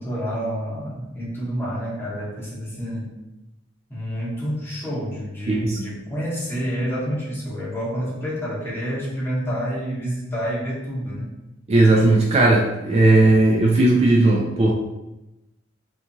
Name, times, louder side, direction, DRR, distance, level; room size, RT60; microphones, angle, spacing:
voice 1, 0.0-3.1 3.9-11.3, equal, 10° left, -8 dB, 0.9 m, -28 dB
voice 2, 5.5-5.8 11.7-14.7, right 2 dB, 35° right, -2 dB, 0.3 m, -16 dB
2.8 x 2.4 x 2.6 m, 0.98 s
head